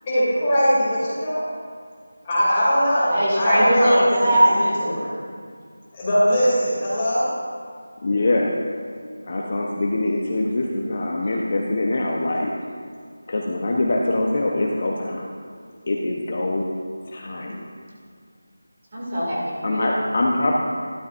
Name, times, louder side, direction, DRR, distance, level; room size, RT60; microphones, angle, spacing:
voice 1, 0.1-1.4 2.2-4.0 4.5-5.1 6.0-7.3, equal, 15° left, -10 dB, 2.6 m, -20 dB
voice 2, 3.1-4.8 18.9-19.9, right 1 dB, 30° right, -6 dB, 2.2 m, -20 dB
voice 3, 8.0-8.5 9.2-12.5 13.3-15.3 15.9-16.7 17.1-17.7 19.6-20.5, left 2 dB, 30° left, -1 dB, 0.7 m, -23 dB
12.5 x 12.0 x 2.5 m, 2.1 s
figure-of-eight pair, 180°, 0 cm